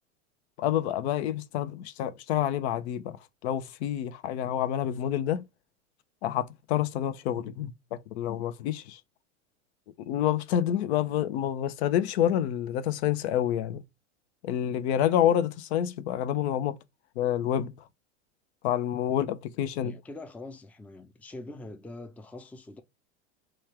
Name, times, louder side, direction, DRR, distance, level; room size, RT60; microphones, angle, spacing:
voice 1, 0.6-3.2 3.4-5.4 6.2-7.7 8.1-9.0 10.0-13.8 14.4-16.8 17.2-17.7 18.6-19.9, left 10 dB, 70° left, 0.7 m, -28 dB
voice 2, 19.8-22.8, left 2 dB, 5° left, 0.4 m, -43 dB
3.2 x 2.4 x 4.3 m
hypercardioid pair, 105°, 34 cm